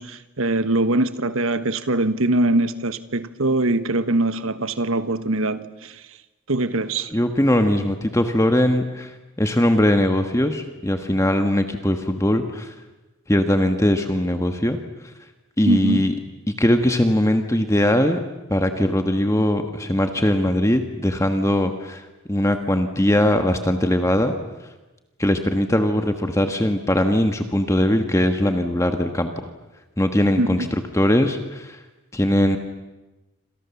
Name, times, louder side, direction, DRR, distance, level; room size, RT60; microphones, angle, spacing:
voice 1, 0.0-6.0 6.5-7.1 15.7-16.1 30.4-30.7, right 2 dB, 75° right, 1.4 m, -22 dB
voice 2, 7.1-9.1 9.4-12.7 13.3-14.8 15.6-16.1 16.5-18.2 18.5-24.3 25.2-29.3 30.0-31.8 32.1-32.6, left 1 dB, 15° left, 1.4 m, -20 dB
29.0 x 26.5 x 7.2 m
head